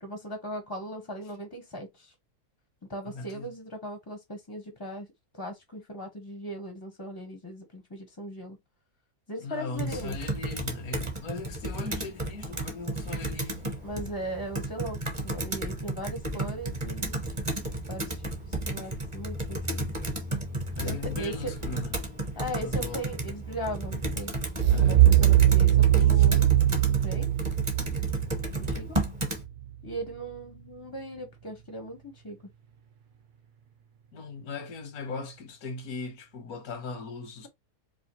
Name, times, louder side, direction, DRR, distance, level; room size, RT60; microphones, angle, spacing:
voice 1, 0.0-2.1 2.9-5.1 5.4-8.6 9.3-10.2 13.8-15.0 15.2-17.2 17.9-19.8 20.8-21.5 22.4-24.3 24.8-27.3 27.9-28.1 28.5-29.0 29.8-32.4, right 1 dB, 25° left, 0.6 m, -38 dB
voice 2, 3.0-3.5 9.4-13.7 20.7-22.0 22.6-23.0 24.7-25.0 26.2-26.3 34.1-37.5, left 3 dB, 90° left, 1.4 m, -38 dB
Computer keyboard, 9.8-29.4, right 1 dB, 25° right, 0.8 m, -33 dB
sound 1, 24.6-29.5, right 12 dB, 85° right, 0.4 m, -21 dB
4.8 x 2.3 x 2.9 m
omnidirectional pair, 1.5 m